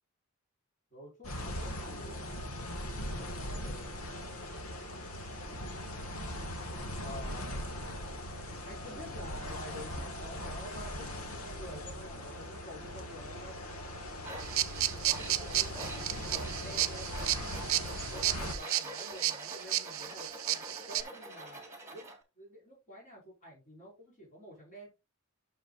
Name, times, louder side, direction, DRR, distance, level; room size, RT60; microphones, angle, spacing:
voice 1, 0.9-2.5 3.0-4.0 7.0-7.6 8.6-13.6 14.5-17.1 18.1-21.6 21.9-22.1 22.3-24.9, equal, 35° left, 4.9 m, -49 dB
sound 1, 1.2-18.6, left 1 dB, 80° left, 1.6 m, -40 dB
Tools, 14.2-22.2, right 2 dB, 10° right, 2.0 m, -45 dB
sound 2, 14.4-21.0, right 14 dB, 65° right, 0.6 m, -33 dB
10.0 x 6.4 x 2.4 m
head